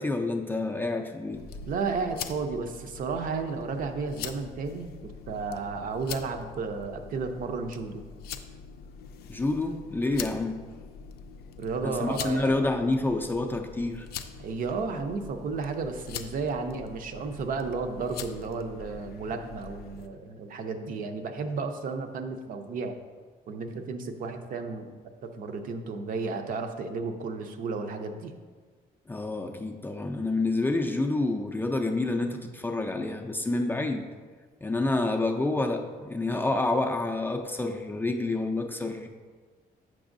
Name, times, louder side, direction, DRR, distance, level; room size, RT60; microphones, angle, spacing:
voice 1, 0.0-1.4 9.3-10.6 11.8-14.1 29.1-34.0 34.6-39.1, left 2 dB, 15° left, 3 dB, 0.4 m, -28 dB
sound 1, 1.3-20.1, left 7 dB, 85° left, 0.4 m, -43 dB
voice 2, 1.6-8.0 11.6-12.6 14.4-23.0 23.5-24.9 25.2-28.3, right 4 dB, 60° right, 6 dB, 0.6 m, -33 dB
7.8 x 6.1 x 2.6 m, 1.5 s
cardioid pair, 140°, 16 cm